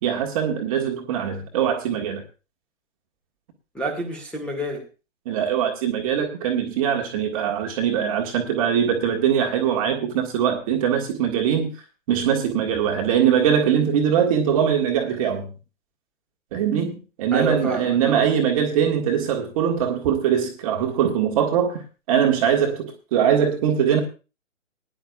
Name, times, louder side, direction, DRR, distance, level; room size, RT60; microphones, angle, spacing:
voice 1, 0.0-2.2 5.2-11.7 12.1-15.5 16.5-21.8 22.1-24.0, right 8 dB, 25° right, 1.7 m, -22 dB
voice 2, 3.7-4.8 17.3-18.3, right 1 dB, 5° left, 1.9 m, -28 dB
20.5 x 10.5 x 2.4 m
figure-of-eight pair, 130°, 40 cm